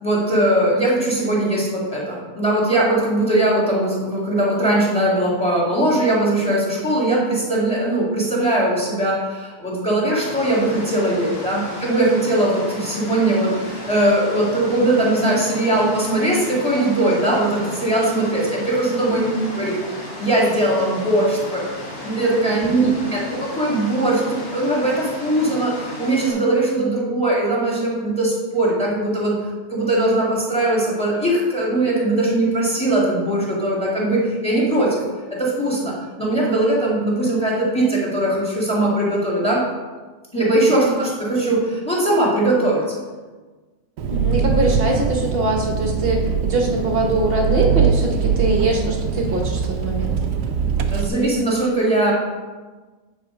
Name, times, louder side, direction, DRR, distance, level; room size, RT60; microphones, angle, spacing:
voice 1, 0.0-19.2 19.5-19.8 20.2-29.4 29.7-35.0 35.3-39.6 40.3-42.9 50.9-52.1, right 1 dB, 5° left, -5 dB, 2.1 m, -20 dB
sound 1, 10.2-26.3, left 1 dB, 65° left, 2.8 m, -35 dB
voice 2, 19.1-19.5 22.7-22.8 40.7-40.9 44.1-50.2, right 2 dB, 40° right, 1 dB, 1.2 m, -22 dB
Engine, 44.0-51.1, right 6 dB, 90° right, 1.2 m, -22 dB
8.9 x 4.2 x 5.0 m, 1.3 s
omnidirectional pair, 1.7 m